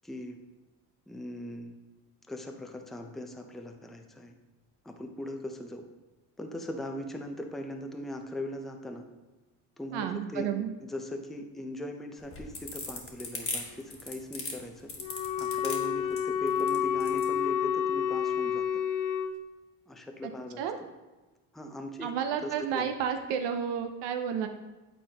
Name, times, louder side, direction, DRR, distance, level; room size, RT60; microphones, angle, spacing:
voice 1, 0.0-0.4 1.1-1.8 2.3-4.3 4.8-5.8 6.4-9.0 9.8-10.5 10.8-14.9 15.4-18.6 19.9-20.9 21.5-22.1 22.4-22.9, left 1 dB, ahead, 4 dB, 0.5 m, -39 dB
voice 2, 9.9-10.7 20.6-20.8 22.0-24.5, right 8 dB, 65° right, 6 dB, 0.7 m, -31 dB
sound 1, 12.2-17.3, left 3 dB, 30° left, 1.3 m, -38 dB
Wind instrument woodwind instrument, 15.0-19.4, left 8 dB, 45° left, 0.6 m, -29 dB
8.9 x 4.1 x 2.9 m, 1.2 s
supercardioid pair, 95°, 45 cm